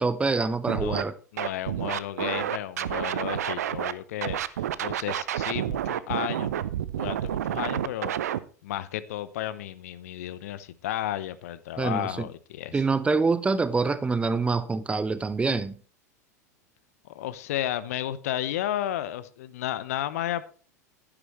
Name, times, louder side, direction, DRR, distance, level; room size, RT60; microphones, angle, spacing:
voice 1, 0.0-1.1 11.8-12.3 12.7-15.7, right 4 dB, 15° right, 0.6 m, -25 dB
Scratching (performance technique), 0.7-1.0 1.4-3.9 4.2-8.4, right 11 dB, 65° right, 0.6 m, -29 dB
voice 2, 0.8-6.6 7.0-8.2 8.6-12.8 17.0-20.4, left 12 dB, 60° left, 0.7 m, -33 dB
11.0 x 10.0 x 3.1 m
figure-of-eight pair, 85°, 9 cm